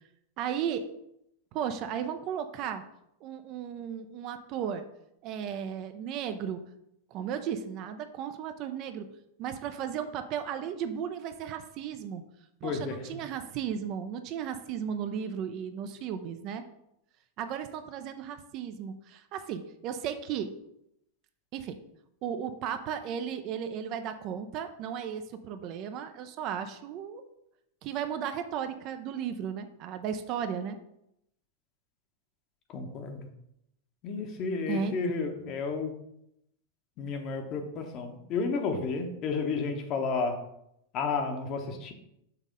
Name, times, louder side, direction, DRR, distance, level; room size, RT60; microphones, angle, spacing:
voice 1, 0.4-0.9 1.5-2.8 3.2-4.8 5.2-6.6 7.1-9.1 9.4-12.2 12.6-16.6 17.4-20.5 21.5-21.8 22.2-27.2 27.8-30.8 34.7-34.9, right 8 dB, 40° right, 9 dB, 0.5 m, -35 dB
voice 2, 12.6-13.0 32.7-33.3 34.0-35.9 37.0-40.4 40.9-41.9, left 4 dB, 35° left, 5 dB, 1.0 m, -32 dB
5.8 x 3.5 x 5.2 m, 0.80 s
figure-of-eight pair, 90°, 0 cm